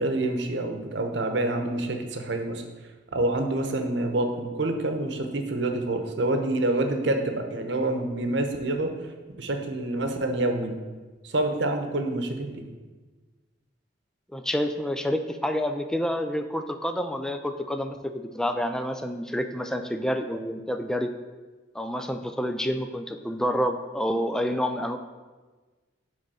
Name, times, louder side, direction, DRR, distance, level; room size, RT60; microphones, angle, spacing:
voice 1, 0.0-2.6 3.1-8.9 9.4-10.8 11.2-12.6, right 2 dB, 70° right, 5 dB, 0.9 m, -27 dB
voice 2, 14.3-21.1 21.7-25.0, equal, 5° left, 6 dB, 0.3 m, -28 dB
7.6 x 3.9 x 6.2 m, 1.3 s
head